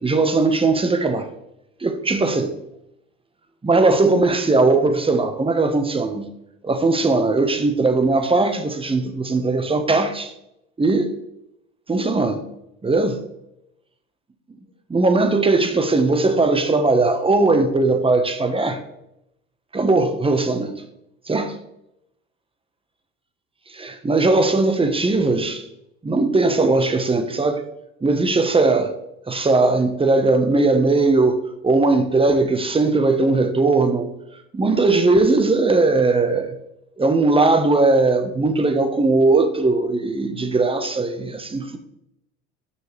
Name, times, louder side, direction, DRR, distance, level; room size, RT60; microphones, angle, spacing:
voice 1, 0.0-1.3 1.8-2.5 3.6-6.3 6.6-10.3 10.8-11.1 11.9-12.4 12.8-13.2 14.9-18.8 19.7-20.8 21.3-21.5 23.7-25.6 26.0-27.6 28.0-28.9 29.3-34.1 34.5-36.5 37.0-41.8, right 3 dB, 15° right, 1.2 m, -19 dB
11.0 x 6.2 x 3.3 m
hypercardioid pair, 70°, 32 cm